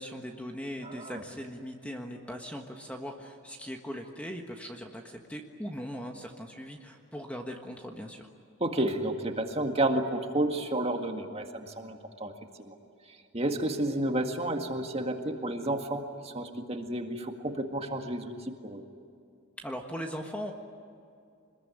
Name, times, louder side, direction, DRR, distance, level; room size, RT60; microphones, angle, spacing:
voice 1, 0.0-8.3 19.6-20.5, equal, 5° left, 2 dB, 1.4 m, -39 dB
voice 2, 0.8-1.2 8.6-12.3 12.6-12.8 13.1-18.8, right 1 dB, 25° right, 4 dB, 1.9 m, -31 dB
26.0 x 21.0 x 9.8 m, 2.4 s
head